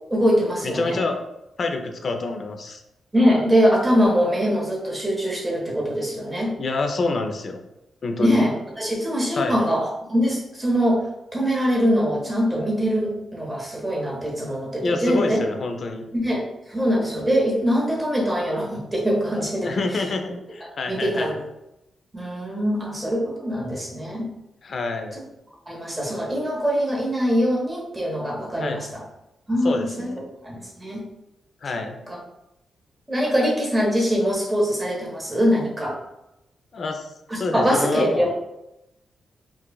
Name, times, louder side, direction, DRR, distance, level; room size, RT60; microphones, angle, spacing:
voice 1, 0.1-1.0 3.1-6.5 8.2-11.0 11.3-15.4 16.1-19.7 20.9-21.3 22.1-24.3 25.7-29.0 29.5-30.1 30.4-31.0 31.8-32.2 33.1-36.0 37.3-38.3, equal, 15° right, -2 dB, 1.2 m, -23 dB
voice 2, 0.6-1.2 1.6-2.8 6.6-7.6 8.0-8.4 9.3-9.6 14.8-16.0 19.6-21.4 24.6-25.2 28.6-28.8 29.6-30.2 31.6-32.0 36.7-37.1 37.4-38.3, left 3 dB, 55° left, 5 dB, 0.5 m, -27 dB
4.6 x 2.4 x 2.3 m, 0.90 s
cardioid pair, 75°, 0 cm